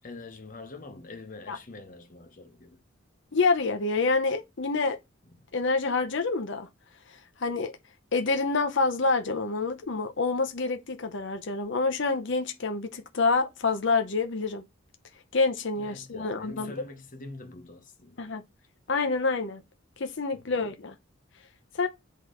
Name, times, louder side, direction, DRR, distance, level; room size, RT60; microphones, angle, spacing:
voice 1, 0.0-2.8 15.7-18.3 20.3-20.4, left 3 dB, 40° left, 1.0 m, -44 dB
voice 2, 3.3-5.0 5.5-6.7 7.4-7.7 8.1-14.6 15.3-16.7 18.2-18.4 18.9-19.6 20.0-20.9 21.7-21.9, left 3 dB, 65° left, 0.7 m, -27 dB
8.3 x 3.0 x 3.8 m
head